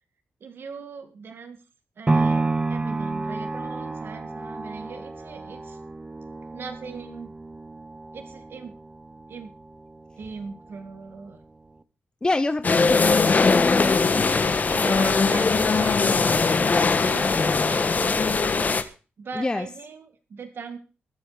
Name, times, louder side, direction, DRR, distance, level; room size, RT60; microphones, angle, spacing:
voice 1, 0.4-1.6 2.0-5.8 6.5-7.3 8.1-8.8 9.3-9.5 10.2-11.4 14.7-18.3 19.2-20.8, right 5 dB, 60° right, 6 dB, 2.1 m, -39 dB
sound 1, 2.1-10.2 10.6-10.7, right 3 dB, 20° right, 1.1 m, -30 dB
voice 2, 12.2-14.4 19.3-19.7, left 2 dB, 20° left, 11 dB, 0.8 m, -27 dB
sound 2, 12.6-18.8, left 4 dB, 40° left, 1.6 m, -20 dB
23.0 x 8.0 x 5.1 m, 0.34 s
cardioid pair, 100°, 4 cm